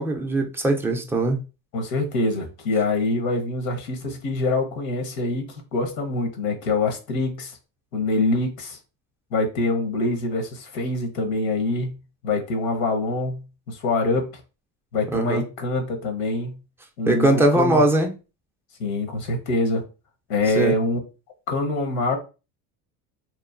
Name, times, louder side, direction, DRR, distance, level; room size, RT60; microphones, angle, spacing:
voice 1, 0.0-1.4 15.1-15.4 17.1-18.1 20.6-20.7, right 1 dB, 5° right, 0.3 m, -20 dB
voice 2, 1.7-7.6 7.9-8.8 9.3-11.9 12.2-13.4 13.7-14.3 14.9-16.6 17.0-17.8 18.8-19.8 20.3-21.0 21.5-22.2, left 2 dB, 90° left, 1.0 m, -25 dB
2.9 x 2.2 x 2.4 m
supercardioid pair, 105°, 40 cm